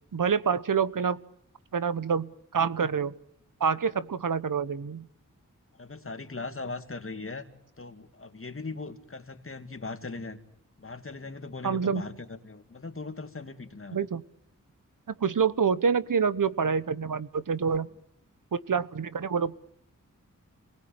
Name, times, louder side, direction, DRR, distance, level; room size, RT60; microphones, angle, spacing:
voice 1, 0.1-1.2 1.7-3.1 3.6-5.1 11.6-12.0 13.9-14.2 15.2-17.9 18.5-19.6, right 6 dB, 70° right, 15 dB, 1.2 m, -27 dB
voice 2, 5.8-7.4 7.8-10.4 10.8-14.1, left 3 dB, 40° left, 7 dB, 2.6 m, -39 dB
28.0 x 20.5 x 9.0 m, 0.73 s
wide cardioid pair, 100°, 33 cm